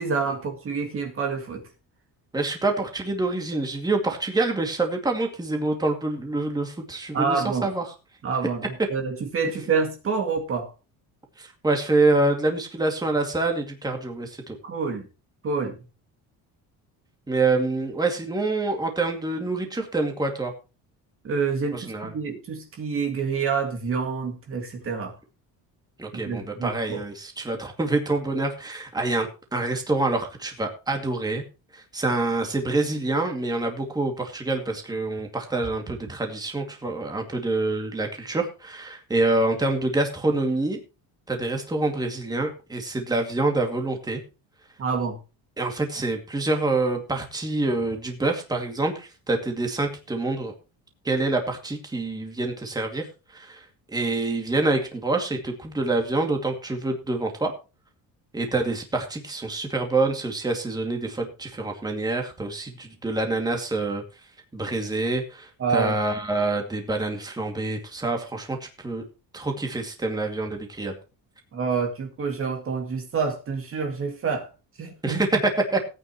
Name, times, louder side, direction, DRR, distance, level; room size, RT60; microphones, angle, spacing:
voice 1, 0.0-1.6 7.1-7.7 8.2-10.7 14.6-15.1 15.4-15.8 21.2-25.2 26.1-27.0 44.8-45.2 65.6-66.0 71.5-74.5 74.8-75.2, right 5 dB, 35° right, 2.2 m, -27 dB
voice 2, 2.3-7.8 11.4-14.6 17.3-20.5 21.7-22.1 26.0-31.4 31.7-40.8 41.3-44.2 45.6-50.5 51.0-57.5 58.3-64.0 64.5-69.0 69.3-70.9 75.0-75.3 75.7-75.8, right 2 dB, 10° right, 2.3 m, -26 dB
17.5 x 9.2 x 3.0 m
cardioid pair, 150°, 38 cm